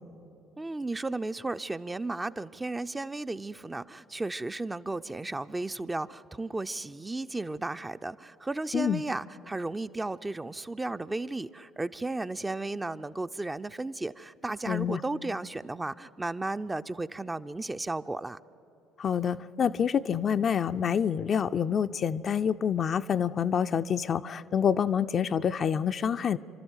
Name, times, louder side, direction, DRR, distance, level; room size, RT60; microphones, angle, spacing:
voice 1, 0.6-18.4, right 2 dB, 15° right, 10 dB, 0.5 m, -34 dB
voice 2, 14.7-15.0 19.0-26.4, left 7 dB, 45° left, 10 dB, 0.5 m, -27 dB
28.5 x 12.5 x 8.2 m, 2.9 s
hypercardioid pair, 55°, 0 cm